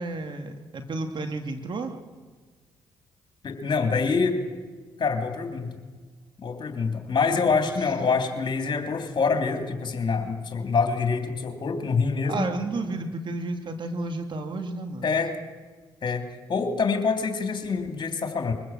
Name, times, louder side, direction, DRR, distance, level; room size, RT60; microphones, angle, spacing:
voice 1, 0.0-1.9 7.5-7.7 12.3-15.1, right 2 dB, 50° right, 6 dB, 2.5 m, -32 dB
voice 2, 3.4-4.4 5.0-5.7 6.4-12.5 15.0-15.3 16.0-16.2 16.5-18.5, left 5 dB, 50° left, 5 dB, 3.2 m, -25 dB
22.5 x 15.5 x 7.6 m, 1.4 s
supercardioid pair, 50°, 10 cm